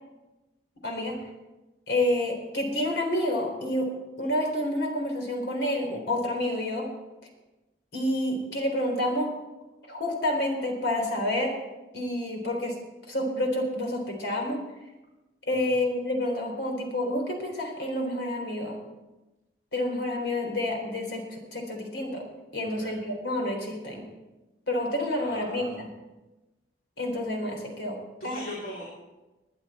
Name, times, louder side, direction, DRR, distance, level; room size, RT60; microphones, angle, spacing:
voice 1, 0.8-1.2 1.9-3.9 4.2-6.9 7.9-9.3 9.9-11.5 11.9-12.7 13.1-14.6 15.5-18.8 19.7-22.2 22.5-24.0 24.7-25.9 27.0-28.0 28.2-28.4, left 1 dB, 85° left, 2 dB, 3.8 m, -29 dB
voice 2, 25.2-25.7 28.2-28.8, left 1 dB, 50° left, -6 dB, 3.6 m, -39 dB
20.5 x 11.0 x 4.4 m, 1.1 s
head